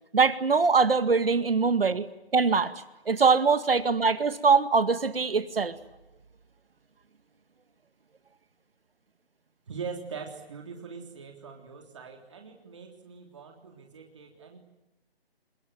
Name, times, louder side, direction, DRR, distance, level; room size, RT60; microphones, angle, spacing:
voice 1, 0.1-2.1 2.3-2.7 3.1-5.8, right 5 dB, 60° right, 12 dB, 2.1 m, -22 dB
voice 2, 9.7-14.6, right 5 dB, 30° right, 2 dB, 3.5 m, -42 dB
25.5 x 21.5 x 9.4 m, 0.95 s
hypercardioid pair, 175°, 32 cm